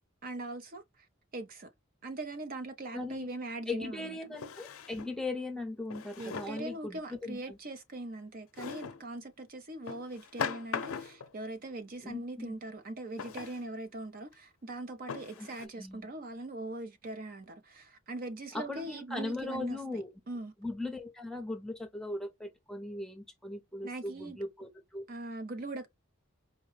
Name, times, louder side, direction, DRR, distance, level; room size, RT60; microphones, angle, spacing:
voice 1, 0.2-1.1 1.3-1.7 2.0-4.1 6.2-20.5 23.8-24.4 25.1-25.9, right 2 dB, 45° right, 0.5 m, -41 dB
voice 2, 2.9-3.3 3.7-7.6 12.0-12.5 15.4-16.1 18.5-20.2 20.6-25.0, left 2 dB, 5° left, 0.7 m, -39 dB
Drawer open or close, 3.0-3.1 4.3-5.2 5.9-6.7 8.6-9.0 9.9-11.3 13.2-13.6 14.3-14.4 15.1-15.7, left 6 dB, 85° left, 0.6 m, -40 dB
4.5 x 2.1 x 3.2 m
head